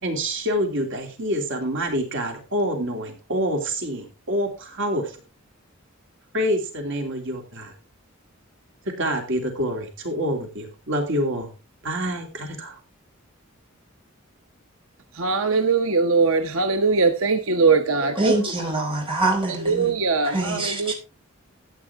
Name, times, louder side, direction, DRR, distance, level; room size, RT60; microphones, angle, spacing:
voice 1, 0.0-5.2 6.3-7.7 8.8-11.5 11.8-12.8, equal, 65° right, 2.8 m, -27 dB
voice 2, 15.2-18.0 19.7-19.8 20.0-20.3, right 4 dB, 80° right, 1.0 m, -20 dB
voice 3, 18.1-20.0 20.2-20.9, right 2 dB, 25° right, 4.8 m, -25 dB
14.0 x 9.1 x 3.6 m
head